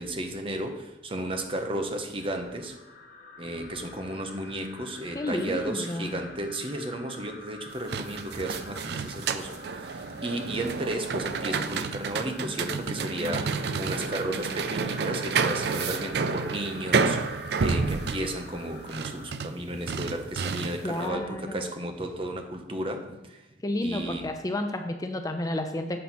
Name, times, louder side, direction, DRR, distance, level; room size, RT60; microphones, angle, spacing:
voice 1, 0.0-2.8 3.4-23.5 23.8-24.3, right 1 dB, 30° right, 4 dB, 0.8 m, -34 dB
sound 1, 2.2-19.4, left 3 dB, 50° left, 0.8 m, -48 dB
voice 2, 5.1-6.2 20.8-21.7 23.6-26.0, left 1 dB, 20° left, 6 dB, 0.5 m, -31 dB
sound 2, 7.7-21.0, right 4 dB, 65° right, 0.4 m, -30 dB
7.6 x 4.2 x 6.0 m, 1.0 s
head